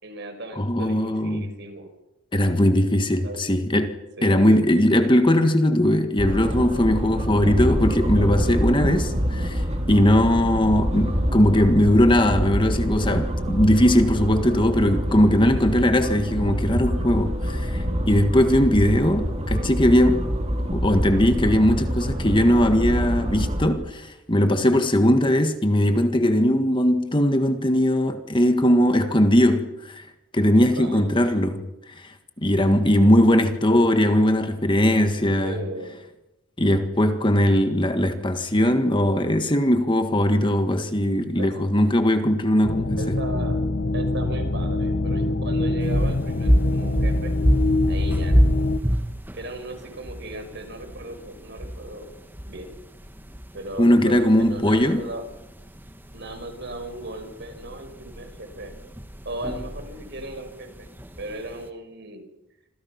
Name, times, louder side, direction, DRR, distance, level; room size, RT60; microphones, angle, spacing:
voice 1, 0.0-1.9 3.2-3.6 4.2-4.6 30.6-31.2 35.4-36.0 41.4-41.5 43.0-43.6 43.9-47.4 47.9-48.4 49.3-52.1 52.5-52.8 53.5-55.2 56.1-58.7 59.3-60.9 61.2-62.2, right 1 dB, 55° right, 5.6 m, -36 dB
voice 2, 0.5-1.5 2.3-3.9 4.2-20.3 20.7-30.1 30.3-31.7 32.0-32.1 32.4-35.6 36.6-43.0 53.8-55.1, left 1 dB, 25° left, 1.7 m, -20 dB
sound 1, 6.2-23.7, equal, 30° right, 4.0 m, -26 dB
sound 2, 42.6-48.8, left 2 dB, 55° left, 1.1 m, -24 dB
sound 3, 45.8-61.7, equal, 10° right, 1.5 m, -28 dB
28.5 x 26.5 x 6.0 m
head